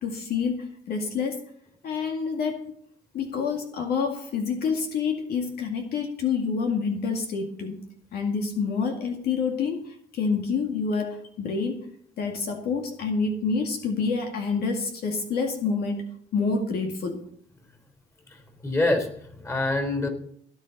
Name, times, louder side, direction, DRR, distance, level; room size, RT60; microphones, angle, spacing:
voice 1, 0.0-1.4 1.8-2.7 3.1-7.8 8.1-11.8 12.2-16.1 16.3-17.2, left 5 dB, 65° left, 3 dB, 2.1 m, -27 dB
voice 2, 18.3-20.1, left 2 dB, 15° left, 5 dB, 3.8 m, -26 dB
18.0 x 9.6 x 4.1 m, 0.66 s
cardioid pair, 110°, 17 cm